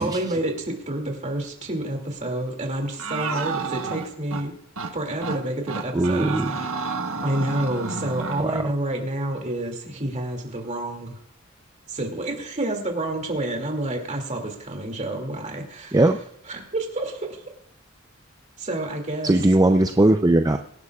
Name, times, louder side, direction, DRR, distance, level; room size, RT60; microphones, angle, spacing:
voice 1, 0.0-4.5 4.9-6.8 7.2-11.2 11.9-16.0 16.5-17.4 18.6-19.3, right 1 dB, 35° right, 2 dB, 2.5 m, -29 dB
sound 1, 3.0-4.4 4.8-4.9 5.2-5.4 5.7-8.4, right 4 dB, 85° right, 1.3 m, -30 dB
voice 2, 5.9-6.5 8.4-8.7 15.9-16.2 19.2-20.6, right 1 dB, 20° right, 6 dB, 0.5 m, -19 dB
24.5 x 11.0 x 2.4 m, 0.72 s
head